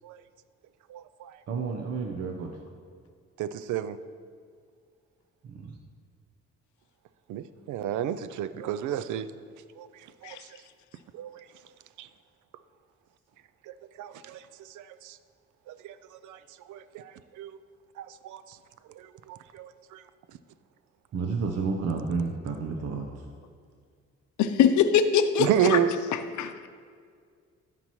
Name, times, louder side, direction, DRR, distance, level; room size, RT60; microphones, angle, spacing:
voice 1, 0.9-1.4 3.4-4.0 7.3-9.3 9.8-9.9 10.2-10.4 11.1-11.4 12.0-12.1 13.7-14.4 14.7-15.2 15.7-16.4 16.7-17.6 18.0-18.6 18.9-20.0 25.4-25.9, right 10 dB, 75° right, 13 dB, 0.5 m, -31 dB
voice 2, 1.5-2.5 5.4-5.7 21.1-23.1, right 4 dB, 55° right, 2 dB, 0.8 m, -31 dB
voice 3, 24.4-25.8 26.1-26.7, left 8 dB, 75° left, 10 dB, 0.6 m, -23 dB
13.5 x 5.8 x 3.1 m, 2.1 s
cardioid pair, 90°, 30 cm